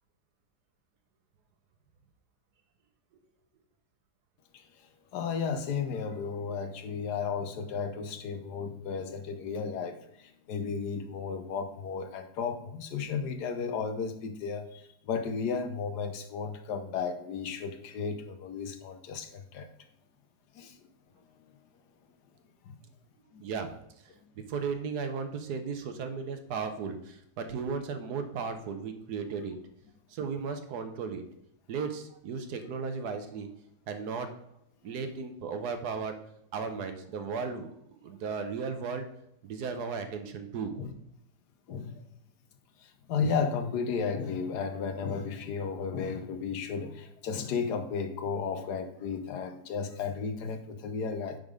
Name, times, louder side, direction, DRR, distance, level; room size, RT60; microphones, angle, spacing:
voice 1, 5.1-19.7 20.5-20.8 22.6-22.8 23.3-23.4 24.1-24.2 40.7-40.9 41.7-42.1 42.8-51.4, left 5 dB, 75° left, 8 dB, 1.4 m, -34 dB
voice 2, 24.4-29.6 30.1-31.2 31.7-33.5 33.9-34.3 34.8-36.1 36.5-37.7 38.0-39.0 39.4-40.8, right 5 dB, 70° right, 7 dB, 1.4 m, -35 dB
9.2 x 3.8 x 5.0 m, 0.77 s
omnidirectional pair, 1.8 m